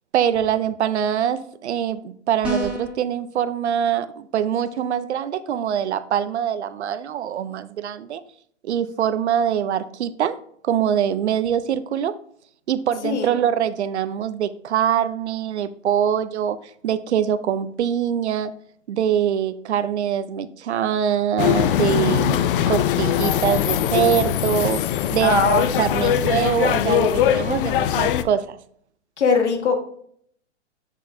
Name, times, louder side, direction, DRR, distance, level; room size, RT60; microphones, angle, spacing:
voice 1, 0.1-8.2 8.6-10.4 10.6-12.1 12.7-16.6 16.8-18.5 18.9-24.8 25.1-28.6, right 9 dB, 70° right, 14 dB, 0.6 m, -23 dB
sound 1, 2.4-3.0, right 2 dB, 5° right, 2.1 m, -26 dB
sound 2, 21.4-28.2, left 10 dB, 50° left, 0.5 m, -21 dB
voice 2, 25.2-26.1 29.2-29.8, left 5 dB, 75° left, 5 dB, 1.6 m, -21 dB
7.3 x 6.2 x 2.7 m, 0.63 s
hypercardioid pair, 125°, 35 cm